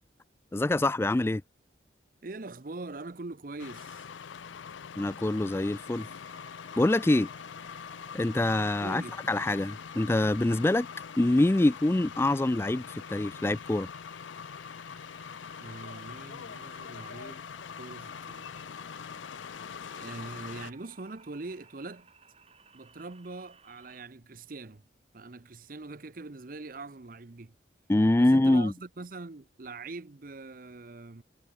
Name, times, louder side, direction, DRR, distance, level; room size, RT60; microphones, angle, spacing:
voice 1, 0.5-1.4 5.0-6.1 6.8-7.3 8.1-9.0 9.3-10.9 11.2-13.9 27.9-28.7, left 1 dB, 15° left, 0.3 m, -25 dB
voice 2, 2.2-4.1 8.8-9.2 15.6-17.4 17.8-18.5 19.9-22.1 22.7-24.8 25.1-27.5 28.2-31.2, right 3 dB, 50° right, 0.8 m, -42 dB
sound 1, 3.6-20.7, left 7 dB, 90° left, 0.5 m, -43 dB
sound 2, 5.3-24.0, right 5 dB, 35° right, 6.1 m, -59 dB
head